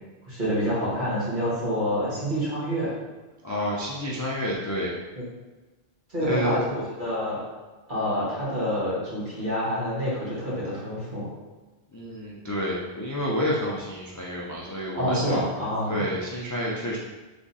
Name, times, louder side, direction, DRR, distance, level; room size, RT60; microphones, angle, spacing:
voice 1, 0.3-2.9 6.1-7.4 7.9-11.2 15.0-16.0, equal, 50° right, -9 dB, 1.8 m, -27 dB
voice 2, 3.4-4.9 6.2-6.6 11.9-15.4 15.9-17.0, equal, 25° left, -5 dB, 0.4 m, -29 dB
3.6 x 3.4 x 4.1 m, 1.2 s
omnidirectional pair, 1.1 m